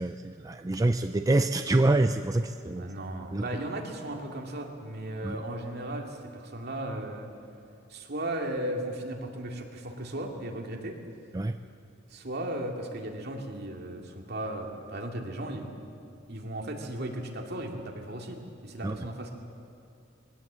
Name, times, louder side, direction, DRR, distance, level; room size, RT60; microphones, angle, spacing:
voice 1, 0.0-2.9 3.3-3.4 5.2-5.4 11.3-11.5 18.8-19.0, right 2 dB, 20° right, 8 dB, 0.4 m, -26 dB
voice 2, 2.8-7.3 7.9-11.0 12.1-15.8 16.3-19.3, right 1 dB, 55° right, 1 dB, 2.5 m, -36 dB
21.5 x 17.5 x 7.6 m, 2.5 s
head